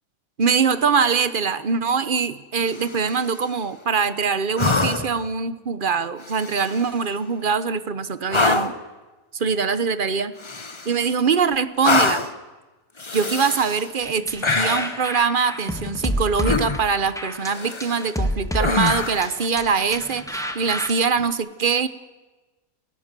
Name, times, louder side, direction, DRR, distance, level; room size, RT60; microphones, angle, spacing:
voice 1, 0.4-8.7 9.3-10.3 10.8-12.3 13.1-21.9, right 5 dB, 40° right, 13 dB, 1.1 m, -23 dB
sound 1, 2.6-3.4 4.6-5.3 6.2-7.0 8.3-8.9 10.4-11.2 11.8-12.4 13.0-13.9 14.4-15.0 16.4-17.0 17.4-18.1 18.6-19.4 21.2-21.3, left 3 dB, 25° left, 0.9 m, -25 dB
sound 2, 14.0-20.9, equal, ahead, 1.6 m, -29 dB
30.0 x 17.5 x 7.6 m, 1.2 s
omnidirectional pair, 1.5 m